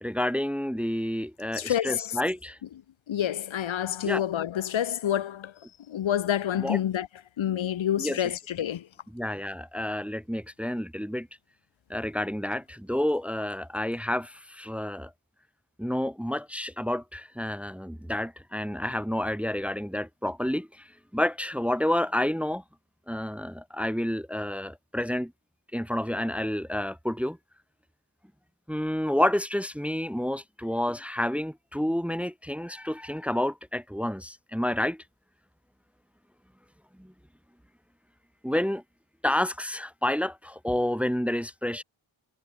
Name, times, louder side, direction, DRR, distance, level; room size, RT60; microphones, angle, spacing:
voice 1, 0.0-2.6 4.0-4.2 6.5-6.8 8.0-8.2 9.1-11.3 11.9-15.1 15.8-20.9 21.1-22.6 23.1-25.3 25.7-27.4 28.7-35.0 37.0-37.1 38.4-38.8 39.2-41.8, left 1 dB, 5° right, 0.8 m, -29 dB
voice 2, 1.5-2.2 3.1-5.5 5.9-7.1 7.4-8.9, left 10 dB, 75° left, 1.1 m, -28 dB
wide cardioid pair, 115°, 47 cm